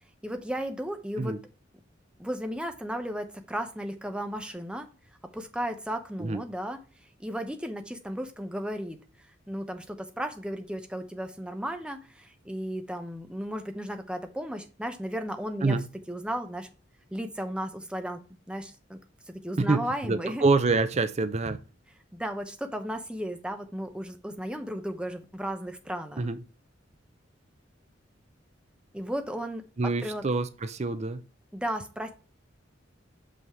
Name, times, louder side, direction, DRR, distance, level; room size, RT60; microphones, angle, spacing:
voice 1, 0.2-1.4 2.2-4.9 5.3-6.8 7.2-9.0 9.5-15.8 16.1-16.7 17.1-19.0 19.3-20.4 22.1-26.3 28.9-30.2 31.5-32.1, equal, 5° right, 0.9 m, -34 dB
voice 2, 19.6-21.6 26.2-26.4 29.8-31.2, right 3 dB, 35° right, 0.5 m, -26 dB
6.5 x 5.7 x 3.1 m
head